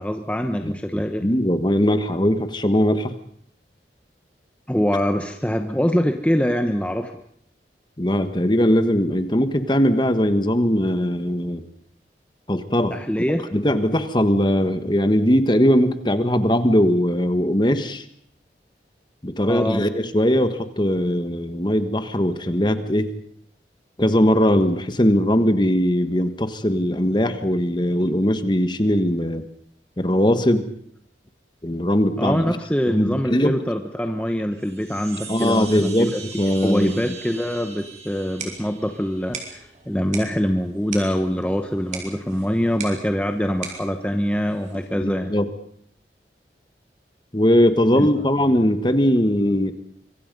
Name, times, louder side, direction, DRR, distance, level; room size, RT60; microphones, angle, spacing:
voice 1, 0.0-1.3 4.7-7.1 12.9-13.4 19.5-19.8 32.2-36.2 36.6-45.3 47.9-48.1, equal, 5° left, 6 dB, 1.0 m, -24 dB
voice 2, 0.6-3.1 8.0-11.6 12.5-12.9 13.5-18.0 19.2-23.1 24.0-29.4 30.0-30.7 31.6-32.6 32.9-33.5 35.3-36.9 45.0-45.5 47.3-49.7, equal, 25° left, 10 dB, 1.5 m, -20 dB
sound 1, 34.5-39.6, right 5 dB, 65° right, 7.7 m, -41 dB
sound 2, 38.1-45.0, right 5 dB, 40° right, 4.8 m, -40 dB
25.5 x 24.0 x 5.4 m, 0.65 s
head